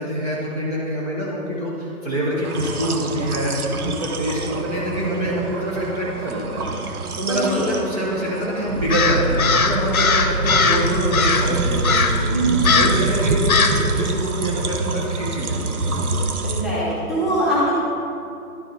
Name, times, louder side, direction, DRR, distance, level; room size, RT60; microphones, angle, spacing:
voice 1, 0.0-6.7 7.2-12.3 12.7-15.8, right 1 dB, 25° right, -6 dB, 0.8 m, -25 dB
sound 1, 2.4-16.6, right 3 dB, 80° right, 0.9 m, -27 dB
voice 2, 7.3-7.7 12.3-12.9 16.4-17.8, right 1 dB, ahead, -11 dB, 1.1 m, -22 dB
sound 2, 8.7-13.8, right 1 dB, 60° right, 1.3 m, -25 dB
Crow, 8.9-10.8 11.1-11.5 11.8-12.2 12.6-13.0 13.5-13.8, left 5 dB, 70° left, 0.8 m, -19 dB
11.5 x 4.8 x 3.9 m, 2.6 s
figure-of-eight pair, 150°, 44 cm